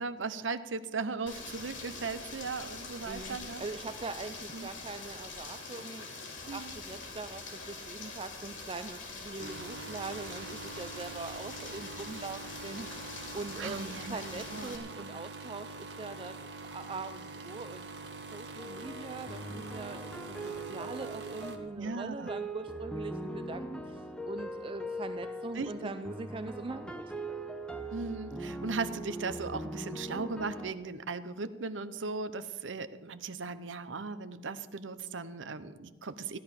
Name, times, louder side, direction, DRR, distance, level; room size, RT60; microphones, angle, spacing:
voice 1, 0.0-3.6 4.5-4.7 6.5-6.7 13.6-14.2 14.5-14.8 21.8-22.3 25.6-25.9 27.9-36.4, right 4 dB, 90° right, 13 dB, 0.8 m, -37 dB
Rain, 1.3-14.8, left 3 dB, 90° left, 3.2 m, -44 dB
voice 2, 3.1-6.1 6.5-16.4 16.6-17.9 18.2-27.1, right 3 dB, 30° right, 9 dB, 0.4 m, -42 dB
sound 1, 9.4-21.6, right 3 dB, 65° right, 1.4 m, -44 dB
sound 2, 18.6-30.7, right 1 dB, 5° left, 0.9 m, -41 dB
15.5 x 11.0 x 5.8 m, 1.3 s
head